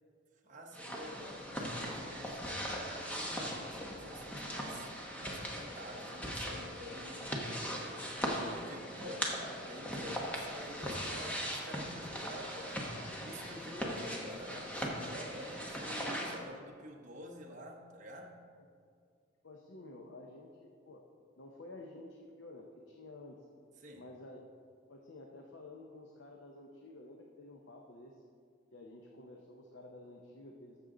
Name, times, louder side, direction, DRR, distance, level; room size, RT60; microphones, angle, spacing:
voice 1, 0.4-4.9 5.2-7.9 8.3-18.4 23.8-24.1, equal, 35° right, 0 dB, 0.9 m, -49 dB
sound 1, 0.7-16.4, equal, 5° left, 1.0 m, -39 dB
voice 2, 19.4-21.0 21.4-23.4 24.0-24.4 24.9-28.2 28.7-30.8, left 2 dB, 65° left, 1 dB, 0.7 m, -51 dB
13.5 x 6.6 x 3.8 m, 2.2 s
head